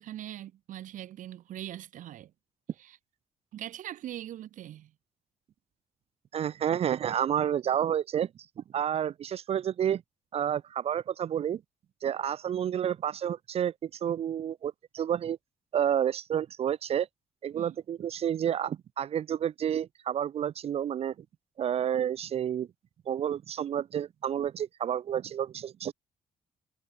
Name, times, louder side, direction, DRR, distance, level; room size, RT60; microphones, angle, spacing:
voice 1, 0.0-2.3 2.8-3.0 3.5-4.9 17.5-17.8, right 12 dB, 70° right, 2.7 m, -41 dB
voice 2, 6.3-8.3 8.6-10.0 10.3-11.6 12.0-15.4 15.7-17.1 17.4-21.1 21.6-22.7 23.1-25.9, right 9 dB, 45° right, 0.5 m, -30 dB
cardioid pair, 110°, 14 cm